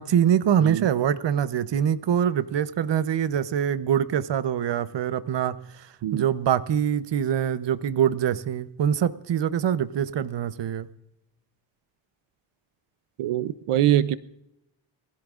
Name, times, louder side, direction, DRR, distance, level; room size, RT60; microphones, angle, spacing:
voice 1, 0.0-10.9, right 9 dB, 60° right, 13 dB, 0.8 m, -24 dB
voice 2, 13.2-14.2, right 12 dB, 90° right, 15 dB, 0.7 m, -23 dB
23.5 x 15.5 x 2.4 m, 0.85 s
wide cardioid pair, 100°, 49 cm